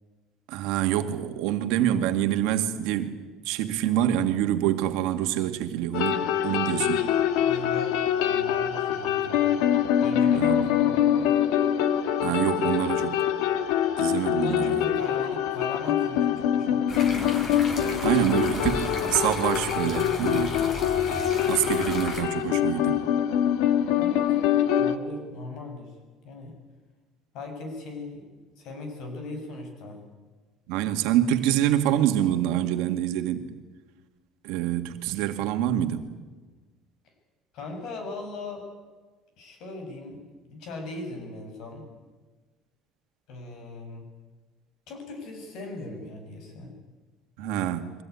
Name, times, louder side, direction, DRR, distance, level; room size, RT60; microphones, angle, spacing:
voice 1, 0.5-3.1 3.5-7.1 10.3-10.6 12.2-13.2 14.0-14.8 18.0-20.6 21.5-23.0 30.7-33.6 34.4-36.1 47.4-47.9, right 12 dB, 85° right, 1.9 m, -26 dB
sound 1, 5.9-25.0, left 10 dB, 80° left, 1.6 m, -24 dB
voice 2, 7.4-9.7 10.0-11.5 14.3-17.4 17.7-18.0 24.0-24.5 24.8-26.0 26.2-26.5 27.3-28.3 28.6-30.0 37.5-38.7 39.4-41.9 43.3-44.1 44.9-46.7, left 2 dB, 60° left, 7.0 m, -39 dB
sound 2, 16.9-22.2, left 2 dB, 30° left, 4.1 m, -34 dB
23.0 x 16.5 x 9.6 m
cardioid pair, 165°, 0 cm